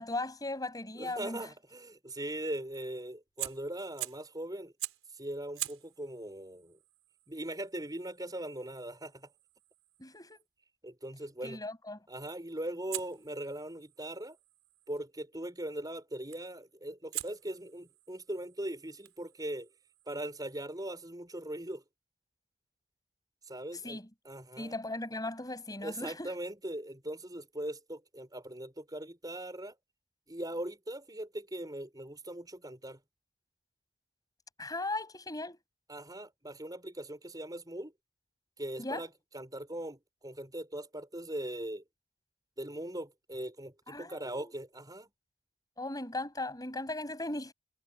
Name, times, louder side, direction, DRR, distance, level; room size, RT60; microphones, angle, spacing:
voice 1, 0.0-1.5 10.0-10.5 11.4-12.0 23.8-24.1 24.6-26.3 34.6-35.6 38.8-39.0 43.9-44.5 45.8-47.5, left 2 dB, 20° left, 7.8 m, -38 dB
voice 2, 1.0-4.7 5.1-6.8 7.3-9.3 10.8-11.6 12.1-14.4 14.9-19.7 20.1-21.8 23.5-24.0 24.3-24.7 25.8-29.8 30.3-33.0 35.9-37.9 38.6-41.8 42.6-45.1, right 1 dB, 20° right, 6.9 m, -40 dB
Fire, 3.3-4.3 4.8-5.1 5.5-10.5 12.9-15.0 16.3-16.6 17.1-20.6, right 15 dB, 80° right, 5.1 m, -45 dB
head